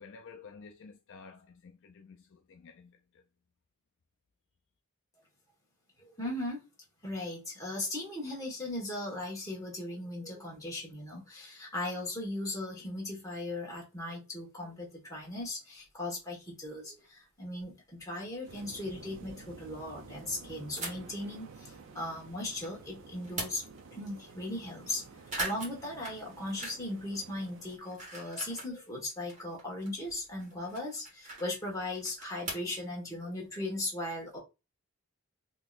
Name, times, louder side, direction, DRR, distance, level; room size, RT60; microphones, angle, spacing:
voice 1, 0.0-3.2, left 5 dB, 60° left, 0.4 m, -52 dB
voice 2, 6.0-6.6 7.0-23.6 23.9-25.0 25.3-34.4, left 1 dB, 15° left, 1.4 m, -38 dB
sound 1, 15.8-15.9 17.0-17.1 17.6-17.7 18.0-18.1 18.3-18.9 20.8-21.2 21.7-22.7 23.1-23.9 24.3-24.4 24.6-24.9 25.2-27.0 27.3-28.7 29.1-32.8, right 2 dB, 35° right, 1.4 m, -42 dB
sound 2, 18.5-27.8, right 4 dB, 60° right, 0.5 m, -51 dB
3.7 x 2.9 x 2.4 m
head